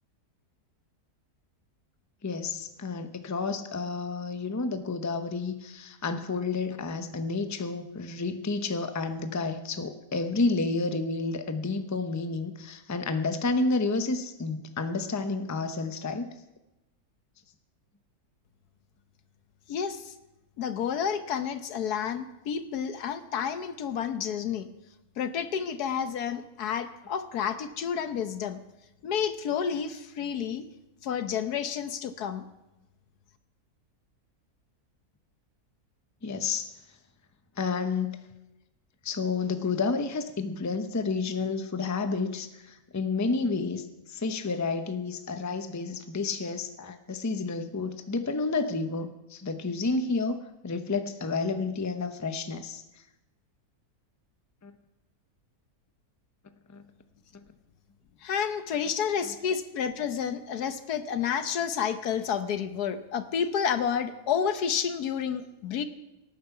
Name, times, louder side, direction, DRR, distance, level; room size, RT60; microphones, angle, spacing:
voice 1, 2.2-16.3 36.2-36.7 37.6-38.2 39.0-52.8 54.6-54.7 56.7-56.8 59.2-59.3, left 3 dB, 15° left, 8 dB, 0.6 m, -30 dB
voice 2, 19.7-20.1 20.6-24.7 25.2-28.6 29.0-30.6 31.0-32.5 58.2-65.8, left 7 dB, 85° left, 10 dB, 1.5 m, -30 dB
18.0 x 9.3 x 5.8 m, 0.96 s
omnidirectional pair, 1.6 m